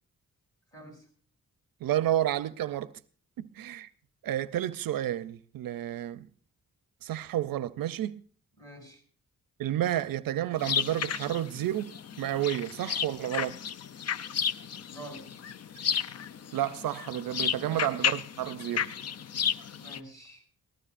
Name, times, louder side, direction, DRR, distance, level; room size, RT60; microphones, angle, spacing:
voice 1, 0.7-1.1 8.6-9.0 14.9-15.4 17.7-17.8 19.8-20.4, right 1 dB, 10° left, 7.4 m, -47 dB
voice 2, 1.8-2.9 3.4-3.9 4.2-6.3 7.0-8.2 9.6-11.9 12.2-13.6 16.5-18.9, right 12 dB, 80° right, 0.5 m, -30 dB
sound 1, 10.6-20.0, left 8 dB, 50° left, 0.5 m, -33 dB
22.5 x 15.0 x 2.5 m
cardioid pair, 95°, 34 cm